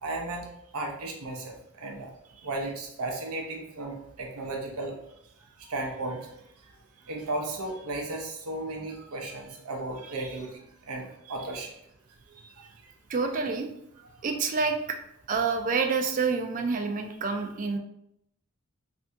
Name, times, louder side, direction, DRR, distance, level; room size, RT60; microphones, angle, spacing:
voice 1, 0.0-0.5 0.7-2.1 2.4-4.9 5.6-6.3 7.1-11.7 12.4-12.7, right 2 dB, 85° right, 1 dB, 0.7 m, -35 dB
voice 2, 13.1-13.7 14.2-15.0 15.3-17.8, right 4 dB, 35° right, 5 dB, 0.3 m, -28 dB
2.6 x 2.6 x 3.3 m, 0.78 s
head